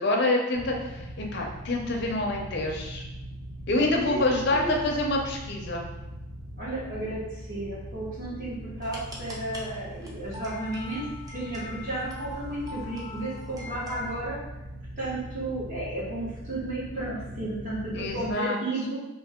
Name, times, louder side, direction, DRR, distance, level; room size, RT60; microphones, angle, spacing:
voice 1, 0.0-3.0 3.7-5.8 17.9-18.6, left 2 dB, 50° left, 0 dB, 0.6 m, -27 dB
sound 1, 0.5-18.3, right 1 dB, 65° right, 1.2 m, -41 dB
voice 2, 4.1-4.9 6.6-11.1 11.3-14.4 15.0-19.0, right 1 dB, 40° right, -8 dB, 1.3 m, -33 dB
sound 2, 8.8-14.1, left 2 dB, 15° right, 0.4 m, -44 dB
2.8 x 2.8 x 3.6 m, 1.0 s
head